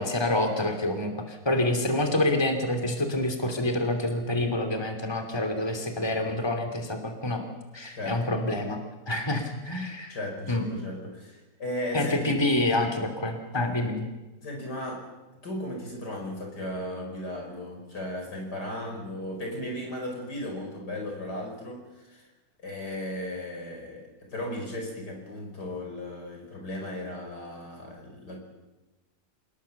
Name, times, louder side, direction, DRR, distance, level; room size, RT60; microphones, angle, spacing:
voice 1, 0.0-7.4 7.7-8.8 9.1-10.2 10.5-10.7 11.9-14.1, left 1 dB, 15° left, 4 dB, 2.8 m, -27 dB
voice 2, 8.0-8.4 10.1-12.4 14.4-15.1 15.4-22.2 22.6-28.4, left 1 dB, 85° left, 2 dB, 6.1 m, -36 dB
27.0 x 20.0 x 7.2 m, 1.1 s
omnidirectional pair, 1.7 m